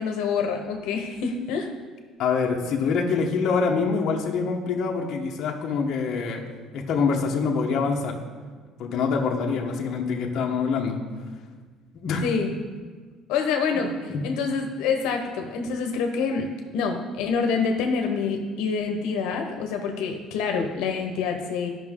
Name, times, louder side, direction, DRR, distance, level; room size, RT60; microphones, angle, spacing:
voice 1, 0.0-1.7 12.2-12.5 13.3-21.7, left 5 dB, 85° left, 3 dB, 0.9 m, -26 dB
voice 2, 2.2-6.4 6.7-8.2 8.8-11.0 11.9-12.3 13.7-13.8 14.1-14.2, left 5 dB, 50° left, 0 dB, 1.1 m, -25 dB
13.0 x 5.8 x 3.7 m, 1.5 s
cardioid pair, 160°, 0 cm